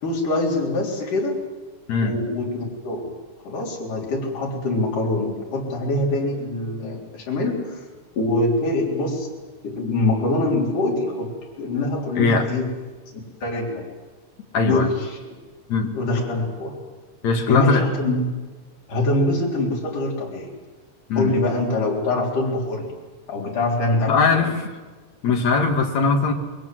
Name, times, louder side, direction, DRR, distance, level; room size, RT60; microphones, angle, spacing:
voice 1, 0.0-1.5 2.0-3.2 3.5-7.8 8.2-9.3 9.6-12.7 13.4-13.9 14.6-15.4 15.9-16.8 17.5-18.2 18.9-20.5 21.2-22.9 23.3-24.5, left 2 dB, 80° left, -2 dB, 5.5 m, -24 dB
voice 2, 1.9-2.2 12.2-12.5 14.5-14.9 15.7-15.9 17.2-17.8 21.1-21.3 24.1-24.7 25.2-26.3, left 4 dB, 60° left, 3 dB, 3.5 m, -20 dB
28.0 x 22.0 x 7.8 m, 1.3 s
omnidirectional pair, 3.7 m